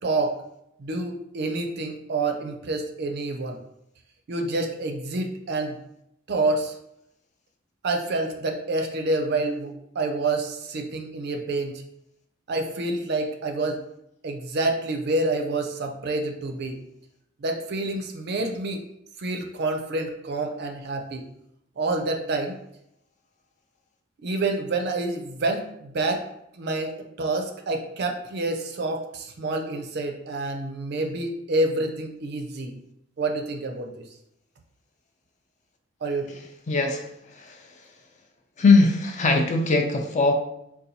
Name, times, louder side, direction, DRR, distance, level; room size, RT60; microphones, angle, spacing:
voice 1, 0.0-0.4 0.8-3.6 4.3-5.8 6.3-6.7 7.8-11.8 12.5-13.8 14.2-16.8 17.4-18.8 19.2-21.3 21.8-22.6 24.2-26.2 26.5-26.9 27.2-32.7 33.2-34.0 36.0-36.3, right 2 dB, 55° right, 4 dB, 0.4 m, -28 dB
voice 2, 36.7-37.0 37.4-37.6 38.6-40.4, left 3 dB, 40° left, 3 dB, 0.4 m, -20 dB
4.0 x 2.3 x 2.7 m, 0.79 s
head